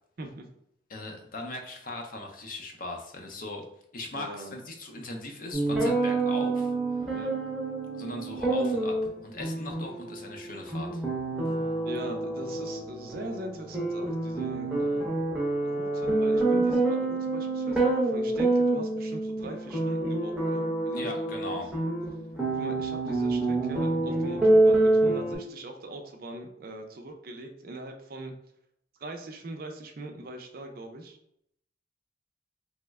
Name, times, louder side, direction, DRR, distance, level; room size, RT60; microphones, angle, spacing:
voice 1, 0.9-3.7 3.9-6.7 7.0-7.1 7.9-11.0 20.9-21.7, left 2 dB, 45° left, 3 dB, 0.5 m, -39 dB
voice 2, 4.2-4.6 7.1-7.3 11.8-15.2 15.6-21.2 21.5-21.6 22.5-28.3 29.0-31.2, right 1 dB, 50° right, 3 dB, 0.4 m, -41 dB
sound 1, 5.5-25.3, right 2 dB, 5° right, 0.7 m, -27 dB
3.0 x 2.1 x 3.4 m, 0.75 s
head